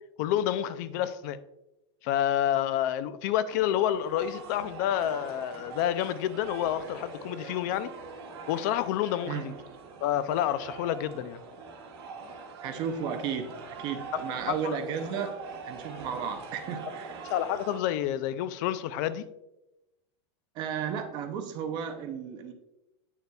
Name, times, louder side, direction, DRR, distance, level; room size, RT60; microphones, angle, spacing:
voice 1, 0.2-1.4 2.0-7.9 8.5-9.5 10.0-11.4 14.5-14.6 17.2-19.3, left 11 dB, 40° left, 0.4 m, -29 dB
sound 1, 3.5-17.8, right 4 dB, 60° right, 1.7 m, -43 dB
voice 2, 12.6-15.4 15.6-17.3 20.5-22.5, right 7 dB, 30° right, 0.5 m, -34 dB
8.2 x 6.6 x 2.3 m
supercardioid pair, 170°, 15 cm